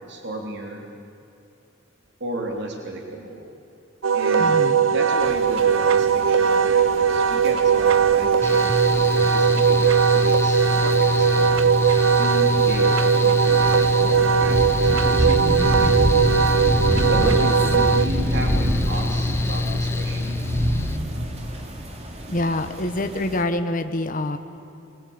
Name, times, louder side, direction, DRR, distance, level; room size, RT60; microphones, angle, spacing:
voice 1, 0.1-0.8 2.2-3.5 4.1-4.6 4.9-11.3 12.2-16.1 17.1-20.4, right 1 dB, 60° right, 1 dB, 3.3 m, -33 dB
Wind instrument woodwind instrument, 4.0-18.1, right 7 dB, 85° right, 0.8 m, -19 dB
voice 2, 4.4-4.8 22.3-24.4, left 1 dB, 45° left, 8 dB, 1.2 m, -25 dB
sound 1, 5.2-23.4, equal, 35° right, 2.7 m, -29 dB
Mechanical fan, 8.4-21.0, left 2 dB, 15° left, 1.1 m, -25 dB
23.5 x 23.0 x 8.8 m, 2.8 s
head